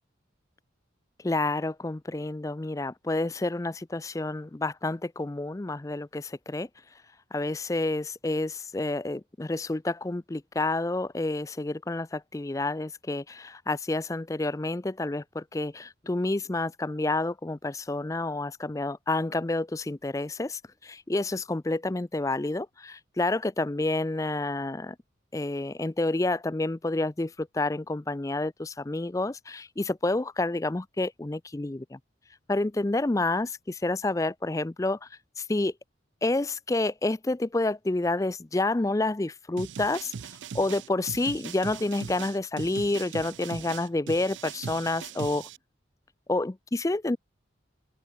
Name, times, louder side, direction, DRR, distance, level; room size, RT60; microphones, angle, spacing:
voice 1, 1.2-6.7 7.3-25.0 25.3-32.0 32.5-35.1 35.4-35.7 36.2-40.1 40.5-45.5 46.3-47.2, left 2 dB, 15° left, 0.4 m, -29 dB
sound 1, 39.6-45.6, right 6 dB, 75° right, 0.5 m, -40 dB
open air
head